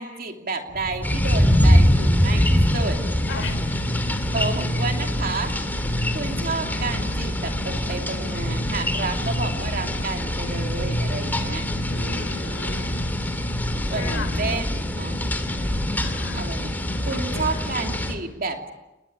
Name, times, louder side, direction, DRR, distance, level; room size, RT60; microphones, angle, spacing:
voice 1, 0.0-3.0 4.3-5.5 6.1-12.5 13.9-14.7 15.0-15.2 16.3-16.8 17.1-18.7, right 3 dB, 50° right, 4 dB, 2.9 m, -31 dB
sound 1, 0.7-14.4, equal, 65° left, 5.7 m, -30 dB
sound 2, 1.0-18.1, equal, 10° left, 2.6 m, -24 dB
voice 2, 3.3-3.6 11.7-12.9 13.9-14.3 16.0-16.5 17.0-17.7, left 4 dB, 85° left, 7 dB, 4.7 m, -36 dB
30.0 x 20.5 x 8.7 m, 1.0 s
head